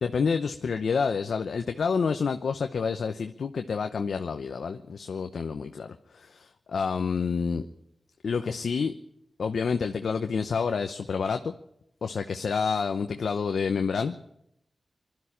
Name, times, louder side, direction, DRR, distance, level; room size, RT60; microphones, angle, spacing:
voice 1, 0.0-7.7 8.2-8.9 9.4-11.5 12.0-14.2, left 5 dB, 80° left, 7 dB, 0.8 m, -28 dB
20.5 x 12.5 x 10.0 m, 0.79 s
cardioid pair, 45°, 0 cm